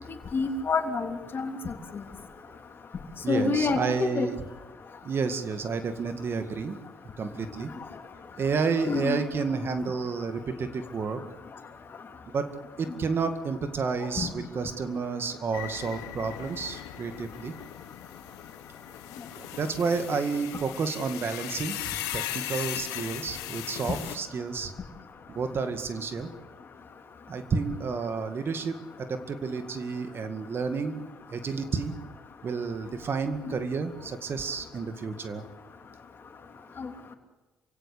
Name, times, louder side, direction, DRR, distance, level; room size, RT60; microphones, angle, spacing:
voice 1, 0.3-1.7 3.3-4.3 8.9-9.2 14.2-14.3 33.5-33.6 36.8-36.9, left 4 dB, 45° left, 5 dB, 3.2 m, -28 dB
voice 2, 3.2-4.4 5.0-6.8 7.2-7.7 8.4-11.2 12.3-12.5 12.8-17.5 19.4-24.7 25.3-26.3 27.3-31.0 31.3-32.0 32.4-35.4, right 5 dB, 45° right, 8 dB, 2.0 m, -30 dB
sound 1, 15.5-24.2, left 14 dB, 80° left, 1.4 m, -38 dB
28.0 x 16.5 x 8.6 m, 1.2 s
supercardioid pair, 60°, 5 cm